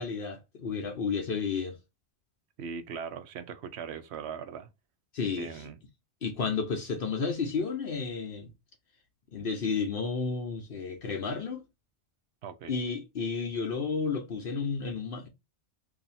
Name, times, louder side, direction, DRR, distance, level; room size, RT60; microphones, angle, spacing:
voice 1, 0.0-1.8 5.1-5.6 6.2-8.5 9.3-11.6 12.7-15.3, left 5 dB, 60° left, 0.8 m, -32 dB
voice 2, 2.6-4.7 5.4-5.8 12.4-12.7, right 6 dB, 80° right, 0.9 m, -39 dB
2.8 x 2.7 x 4.0 m
omnidirectional pair, 1.1 m